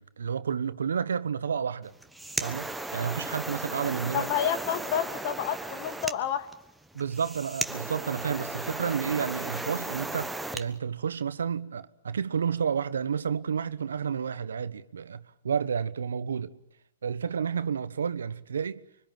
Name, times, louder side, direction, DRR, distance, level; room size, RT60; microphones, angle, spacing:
voice 1, 0.0-1.9 2.4-4.3 6.9-16.5 17.0-18.8, right 7 dB, 80° right, 1.2 m, -31 dB
sound 1, 1.9-10.7, right 2 dB, 5° right, 1.2 m, -36 dB
voice 2, 4.1-6.5, left 9 dB, 45° left, 2.2 m, -29 dB
25.0 x 24.0 x 9.2 m
hypercardioid pair, 130°, 0 cm